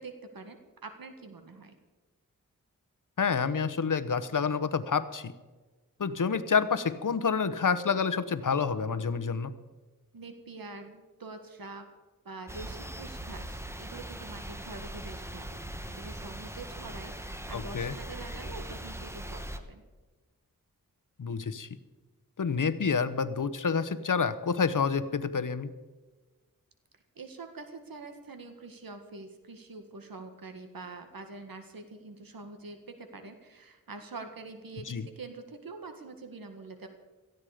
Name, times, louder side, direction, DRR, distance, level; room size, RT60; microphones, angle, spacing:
voice 1, 0.0-1.7 10.1-11.9 12.3-15.6 15.9-19.8 27.2-36.9, right 3 dB, 85° right, 7 dB, 1.8 m, -45 dB
voice 2, 3.2-5.3 6.0-9.5 17.5-17.9 21.2-21.7 22.4-25.7 34.9-35.0, left 5 dB, 65° left, 13 dB, 1.1 m, -28 dB
sound 1, 12.5-19.6, right 1 dB, 10° right, 1.3 m, -40 dB
18.0 x 14.5 x 5.1 m, 1.3 s
wide cardioid pair, 90°, 34 cm